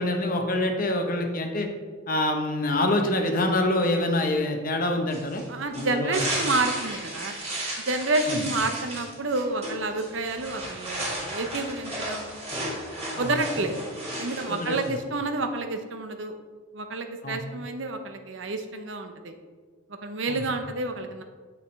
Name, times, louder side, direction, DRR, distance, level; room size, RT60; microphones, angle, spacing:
voice 1, 0.0-1.7 2.1-5.4 5.8-6.2 8.3-8.4 13.1-13.3 14.5-14.8 17.2-17.4 20.3-20.4, left 1 dB, 45° left, 4 dB, 0.8 m, -26 dB
sound 1, 5.1-15.0, right 1 dB, 30° right, 2.2 m, -34 dB
voice 2, 5.5-7.3 7.8-12.4 13.2-13.9 14.2-16.3 16.7-19.3 20.0-21.2, right 2 dB, 65° right, 7 dB, 0.7 m, -29 dB
8.1 x 5.7 x 3.1 m, 1.5 s
head